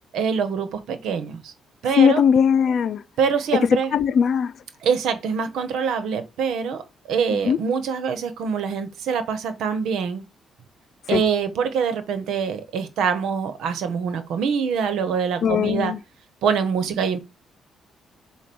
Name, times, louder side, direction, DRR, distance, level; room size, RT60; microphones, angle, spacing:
voice 1, 0.1-1.5 1.8-2.2 3.2-3.9 4.8-10.2 11.1-15.9 16.4-17.2, right 6 dB, 80° right, 1.2 m, -24 dB
voice 2, 2.0-3.0 3.9-4.5 7.3-7.6 11.1-11.2 15.4-16.0, left 7 dB, 60° left, 0.5 m, -19 dB
7.5 x 2.5 x 5.4 m
cardioid pair, 90°, 0 cm